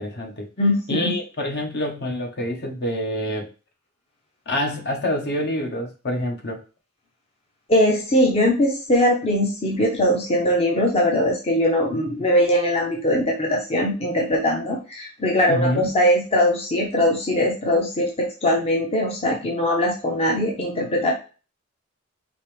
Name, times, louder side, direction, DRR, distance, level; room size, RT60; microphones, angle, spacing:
voice 1, 0.0-0.5 0.9-3.5 4.5-6.6 15.5-15.9, left 1 dB, 50° left, 2 dB, 1.2 m, -26 dB
voice 2, 0.6-1.1 7.7-21.1, left 1 dB, 30° left, 0 dB, 0.8 m, -21 dB
5.3 x 3.0 x 3.3 m, 0.33 s
head